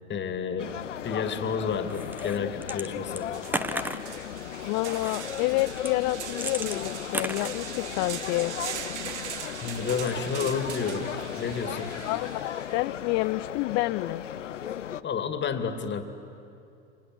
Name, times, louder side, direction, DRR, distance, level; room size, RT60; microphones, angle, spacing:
voice 1, 0.1-0.8 1.0-3.3 9.6-12.0 15.0-16.0, left 6 dB, 30° left, 8 dB, 2.5 m, -30 dB
sound 1, 0.6-15.0, left 10 dB, 85° left, 0.8 m, -36 dB
sound 2, 1.9-2.9 3.2-4.1 4.9-5.2 5.7-8.2 9.0-9.6 10.0-10.4, right 1 dB, 5° right, 1.2 m, -35 dB
sound 3, 2.8-2.9 3.3-12.8, right 8 dB, 70° right, 2.0 m, -41 dB
voice 2, 4.7-8.5 12.1-14.2, left 21 dB, 45° left, 14 dB, 0.5 m, -29 dB
30.0 x 25.5 x 7.8 m, 2.8 s
hypercardioid pair, 85°, 36 cm